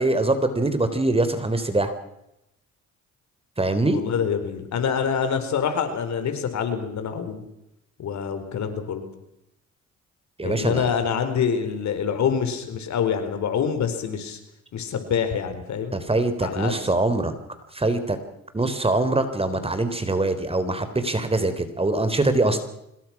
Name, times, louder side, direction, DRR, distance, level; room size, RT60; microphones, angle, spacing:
voice 1, 0.0-1.9 3.6-4.0 10.4-10.9 15.9-17.3 17.7-18.2 18.5-22.6, right 2 dB, 20° right, 10 dB, 3.8 m, -23 dB
voice 2, 3.9-7.4 8.0-9.0 10.4-14.4 14.7-16.0 16.4-16.8, left 7 dB, 70° left, 8 dB, 4.5 m, -26 dB
25.5 x 21.5 x 6.1 m, 0.84 s
cardioid pair, 90°, 30 cm